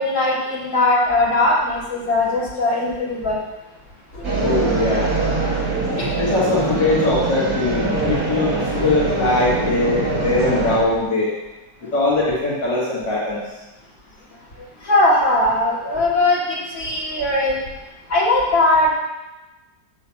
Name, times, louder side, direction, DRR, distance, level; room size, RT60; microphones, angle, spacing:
voice 1, 0.0-3.4 4.1-4.2 6.0-6.1 8.2-8.3 8.6-8.7 14.8-17.6 18.1-19.0, left 2 dB, 45° left, -7 dB, 3.2 m, -19 dB
sound 1, 4.2-10.8, right 2 dB, 55° right, 3.1 m, -23 dB
voice 2, 4.4-5.2 6.1-11.3 11.9-13.5, left 2 dB, 80° left, -6 dB, 2.5 m, -21 dB
6.9 x 6.6 x 7.1 m, 1.1 s
omnidirectional pair, 1.9 m